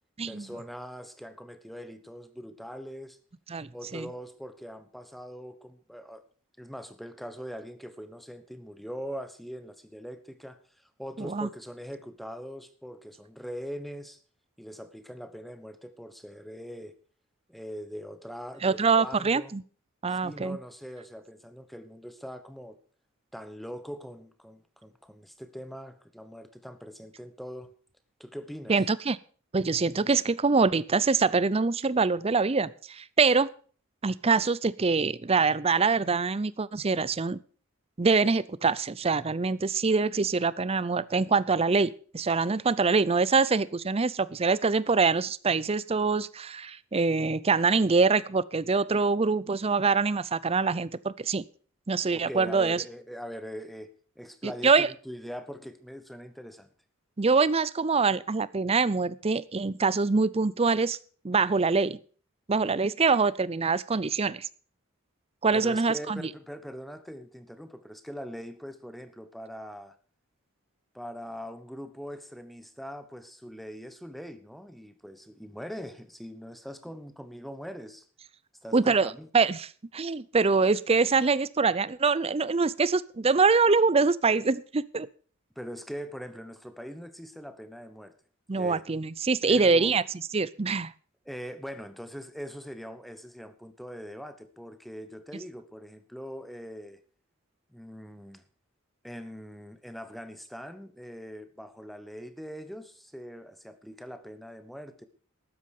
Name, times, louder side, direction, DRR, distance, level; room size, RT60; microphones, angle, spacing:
voice 1, 0.3-3.2 3.7-6.2 6.6-14.2 14.6-16.9 17.5-19.5 20.1-22.8 23.3-27.7 28.2-28.8 52.1-56.7 65.5-70.0 70.9-78.1 78.6-79.3 85.5-88.1 88.5-88.8 89.5-90.0 91.2-97.0 97.7-98.4 99.0-105.1, equal, ahead, 1.2 m, -42 dB
voice 2, 3.5-4.1 11.2-11.5 18.6-19.6 20.0-20.6 28.7-29.2 29.5-33.5 34.0-37.4 38.0-51.4 51.9-52.8 54.4-54.9 57.2-61.0 61.2-62.0 62.5-64.5 65.4-66.3 78.7-85.1 88.5-90.0 90.3-90.9, right 4 dB, 30° right, 0.5 m, -24 dB
13.0 x 9.3 x 6.6 m
head